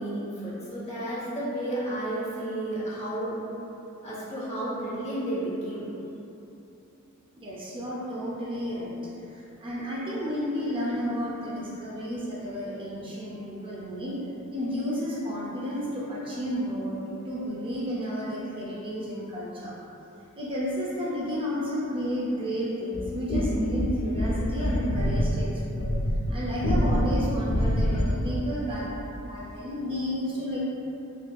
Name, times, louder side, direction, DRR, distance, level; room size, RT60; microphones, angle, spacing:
voice 1, 0.0-3.4 4.0-5.9, right 1 dB, 30° left, -8 dB, 0.8 m, -32 dB
voice 2, 7.3-9.0 9.3-14.2 14.5-19.7 20.3-25.9 26.3-30.6, equal, 25° right, -6 dB, 0.5 m, -32 dB
sound 1, 22.9-28.3, equal, 85° left, 0.4 m, -26 dB
4.4 x 2.6 x 2.3 m, 2.9 s
head